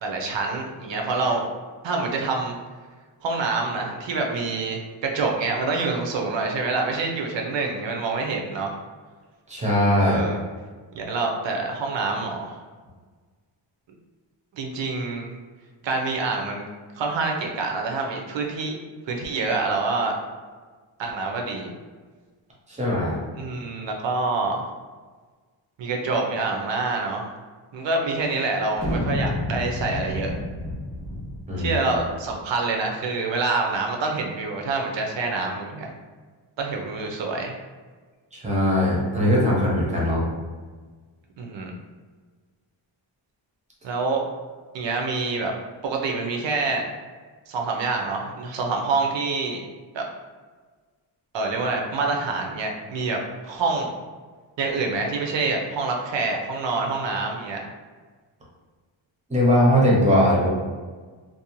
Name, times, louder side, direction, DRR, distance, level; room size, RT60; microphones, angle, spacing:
voice 1, 0.0-1.5 1.8-2.5 3.2-8.7 10.0-10.4 10.9-12.6 14.5-15.3 15.8-16.7 17.0-18.8 19.1-20.2 21.0-21.7 23.3-24.7 25.8-27.3 27.7-30.3 31.6-35.9 36.6-37.5 41.4-41.7 43.8-44.2 44.7-45.5 45.8-46.8 47.5-49.6 49.9-50.1 51.3-53.9 54.6-57.6, right 3 dB, 65° right, 1 dB, 0.5 m, -26 dB
voice 2, 9.5-10.2 22.7-23.2 31.5-31.8 38.3-40.2 59.3-60.5, equal, 15° right, -4 dB, 0.6 m, -20 dB
sound 1, 28.8-32.4, left 1 dB, 25° left, 0.8 m, -30 dB
2.6 x 2.0 x 2.9 m, 1.4 s
wide cardioid pair, 160°, 49 cm